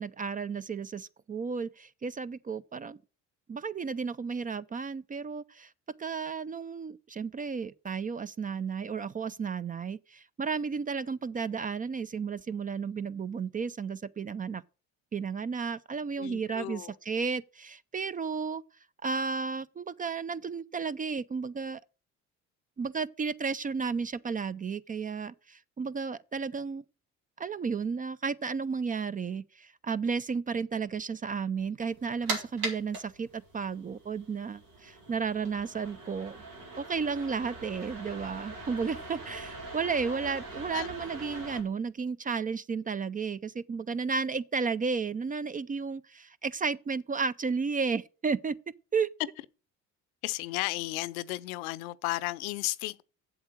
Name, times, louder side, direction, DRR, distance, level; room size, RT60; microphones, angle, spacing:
voice 1, 0.0-3.0 3.5-5.7 6.0-14.6 15.1-18.6 19.0-21.8 22.8-26.8 27.4-36.4 36.8-48.6 48.9-49.1, right 5 dB, 20° right, 0.4 m, -33 dB
voice 2, 16.2-16.9 40.7-40.9 50.2-53.0, left 19 dB, 85° left, 0.6 m, -34 dB
sound 1, 31.9-41.6, right 2 dB, 90° right, 2.2 m, -41 dB
7.9 x 7.4 x 6.2 m
hypercardioid pair, 60°, 41 cm